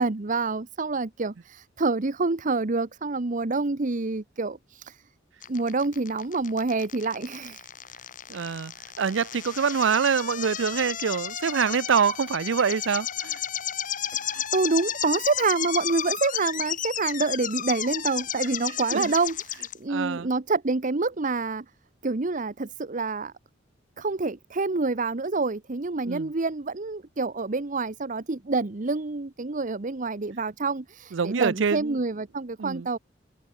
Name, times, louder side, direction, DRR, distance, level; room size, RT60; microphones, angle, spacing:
voice 1, 0.0-5.0 5.5-7.6 14.1-21.6 22.0-23.3 24.0-33.0, right 3 dB, 45° right, 0.9 m, -27 dB
sound 1, 5.4-19.7, left 10 dB, 45° left, 1.7 m, -33 dB
voice 2, 8.3-8.7 9.0-13.4 14.3-14.4 18.9-19.1 19.9-20.3 26.1-26.3 31.1-32.0 32.6-32.9, right 6 dB, 85° right, 0.5 m, -25 dB
head